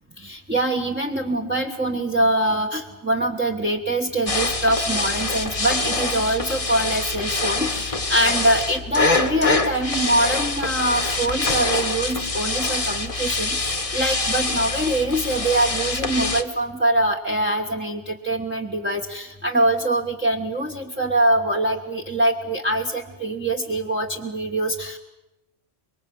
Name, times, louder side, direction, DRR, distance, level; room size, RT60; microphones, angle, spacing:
voice 1, 0.2-25.0, right 1 dB, 10° right, -1 dB, 1.4 m, -23 dB
Swiffer Mopping Tile Floor, 4.3-16.4, left 3 dB, 30° left, 1.4 m, -25 dB
25.0 x 22.5 x 7.8 m, 0.96 s
omnidirectional pair, 1.1 m